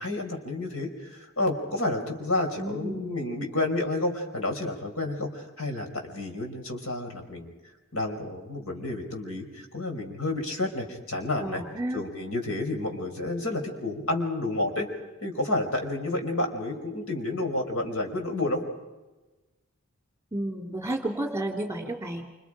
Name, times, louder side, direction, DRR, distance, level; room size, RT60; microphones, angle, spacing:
voice 1, 0.0-7.5 7.9-11.6 11.9-14.9 15.2-18.6, left 2 dB, 75° left, 4 dB, 4.9 m, -30 dB
voice 2, 2.6-3.2 11.4-12.0 20.3-22.2, right 1 dB, 15° right, 2 dB, 3.1 m, -31 dB
28.5 x 27.5 x 5.1 m, 1.1 s
head